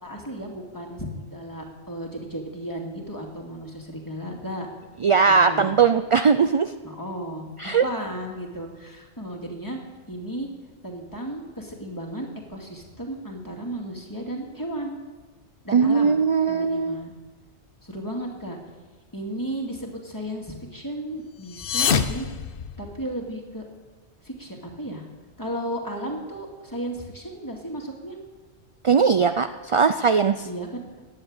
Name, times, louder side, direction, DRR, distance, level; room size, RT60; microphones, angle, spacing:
voice 1, 0.0-4.7 5.3-5.9 6.8-9.8 10.1-10.5 10.8-15.0 15.6-16.2 16.5-17.1 17.8-18.6 19.1-22.3 22.8-23.7 24.2-25.1 25.4-28.2 30.4-31.1, right 1 dB, 15° left, 0 dB, 2.5 m, -34 dB
voice 2, 5.0-6.7 7.6-7.8 15.7-17.0 28.8-30.5, right 5 dB, 45° right, 10 dB, 0.4 m, -19 dB
sound 1, 21.4-23.3, left 7 dB, 55° left, 0.9 m, -26 dB
15.0 x 9.8 x 8.9 m, 1.3 s
omnidirectional pair, 1.2 m